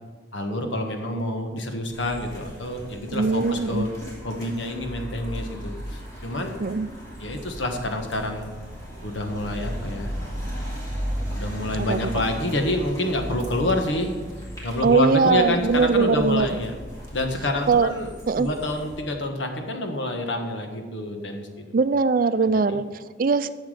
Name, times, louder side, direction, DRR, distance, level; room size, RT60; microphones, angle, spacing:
voice 1, 0.3-3.9 4.2-6.6 7.2-8.5 9.0-10.1 11.3-14.1 14.6-16.7 17.1-18.1 18.3-21.5, left 1 dB, 80° left, 4 dB, 1.5 m, -27 dB
sound 1, 1.9-19.0, equal, 20° left, 2.9 m, -36 dB
voice 2, 3.1-3.9 6.6-6.9 11.8-12.0 14.8-16.5 17.7-17.9 18.3-18.5 21.7-23.5, right 4 dB, 50° right, 13 dB, 0.4 m, -21 dB
11.5 x 7.2 x 5.1 m, 1.5 s
head